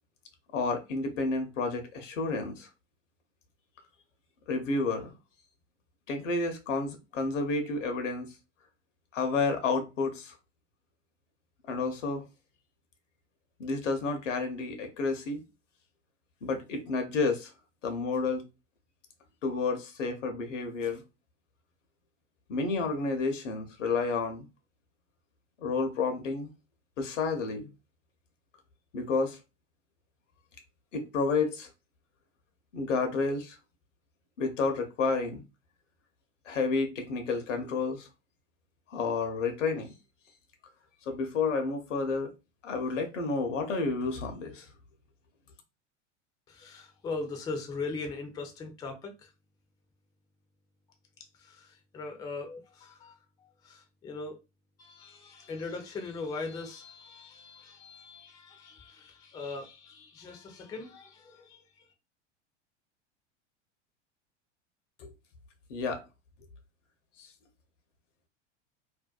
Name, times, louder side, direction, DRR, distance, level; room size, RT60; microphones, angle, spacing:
voice 1, 0.5-2.7 4.5-5.1 6.1-8.3 9.1-10.3 11.7-12.2 13.6-15.4 16.4-17.5 17.8-18.4 19.4-21.0 22.5-24.4 25.6-26.5 27.0-27.7 28.9-29.4 30.9-31.7 32.7-33.6 34.4-35.4 36.5-38.1 38.9-39.9 41.1-42.3 42.6-44.7 65.0-65.1 65.7-66.0, left 4 dB, 80° left, 0.7 m, -30 dB
voice 2, 46.5-49.3 51.3-54.4 54.8-61.6, left 3 dB, 10° left, 0.3 m, -40 dB
2.5 x 2.1 x 2.3 m
hypercardioid pair, 90°, 37 cm